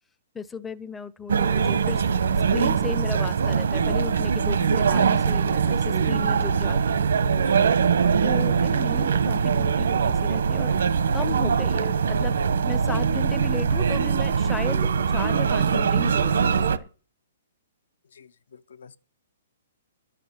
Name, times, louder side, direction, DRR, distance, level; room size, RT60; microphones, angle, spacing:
voice 1, 0.3-2.0 2.5-7.0 8.2-10.8 11.1-16.9, left 5 dB, 5° left, 0.5 m, -35 dB
sound 1, 1.3-16.8, right 6 dB, 80° right, 1.1 m, -22 dB
voice 2, 18.1-19.0, left 5 dB, 85° left, 0.9 m, -47 dB
12.0 x 7.4 x 7.0 m
hypercardioid pair, 170°, 0 cm